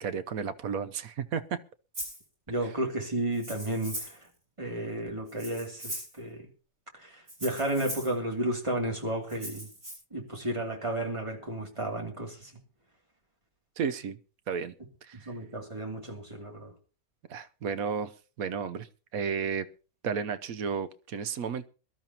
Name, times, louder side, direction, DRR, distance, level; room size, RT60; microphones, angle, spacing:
voice 1, 0.0-1.6 2.6-2.7 13.8-14.2 14.5-14.7 15.0-15.3 17.3-18.1 18.4-18.9 19.1-19.7 20.0-21.7, right 6 dB, 70° right, 1.2 m, -32 dB
Rattle (instrument), 1.9-2.2 3.3-4.2 5.3-6.2 7.3-8.1 9.3-9.9, right 1 dB, 45° right, 7.8 m, -39 dB
voice 2, 2.5-4.2 4.6-6.5 7.0-9.7 10.1-12.5 15.3-16.7, right 1 dB, 20° right, 2.7 m, -32 dB
22.0 x 12.5 x 2.9 m
omnidirectional pair, 1.6 m